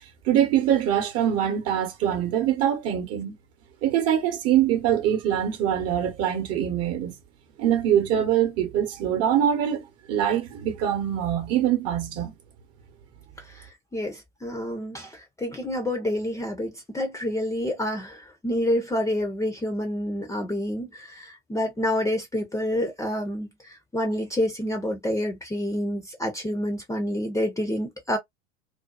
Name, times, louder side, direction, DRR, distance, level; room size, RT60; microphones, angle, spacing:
voice 1, 0.3-3.3 3.8-7.2 7.6-12.3, right 10 dB, 40° right, 1.0 m, -23 dB
voice 2, 13.9-28.2, left 1 dB, 10° left, 0.6 m, -28 dB
2.6 x 2.3 x 2.3 m
figure-of-eight pair, 80°, 37 cm